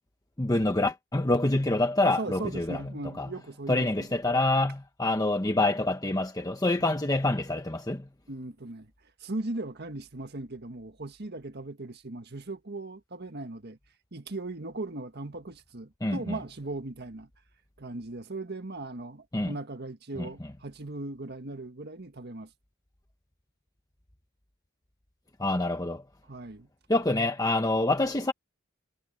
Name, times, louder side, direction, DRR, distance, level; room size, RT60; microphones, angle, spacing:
voice 1, 0.4-2.8 3.2-3.3 3.7-8.0 16.0-16.4 19.3-19.5 20.2-20.3 25.4-26.0 26.9-28.3, left 2 dB, 20° left, 1.0 m, -26 dB
voice 2, 2.0-4.1 6.8-6.9 8.3-13.8 14.1-17.3 17.8-22.5 26.3-26.7, right 2 dB, 55° right, 1.7 m, -38 dB
head